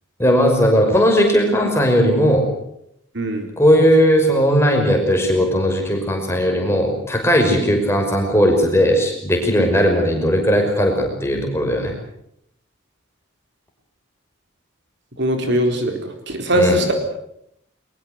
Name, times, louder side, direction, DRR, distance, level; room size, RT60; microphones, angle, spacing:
voice 1, 0.2-2.5 3.6-11.9 16.5-16.8, equal, 10° left, 2 dB, 5.7 m, -17 dB
voice 2, 3.1-3.5 7.6-7.7 15.2-16.9, equal, 55° right, 5 dB, 4.2 m, -20 dB
22.5 x 21.5 x 8.2 m, 0.75 s
head